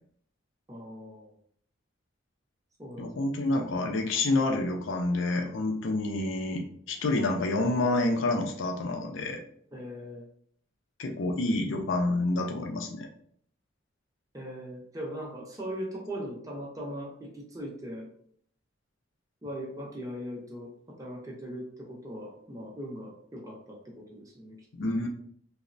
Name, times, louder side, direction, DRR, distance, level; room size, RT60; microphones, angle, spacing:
voice 1, 0.7-1.3 2.8-3.1 9.7-10.2 14.3-18.1 19.4-24.6, equal, 15° right, -2 dB, 0.6 m, -39 dB
voice 2, 3.0-9.4 11.0-13.1 24.7-25.1, left 2 dB, 70° left, 3 dB, 0.4 m, -28 dB
3.0 x 2.0 x 2.5 m, 0.62 s
head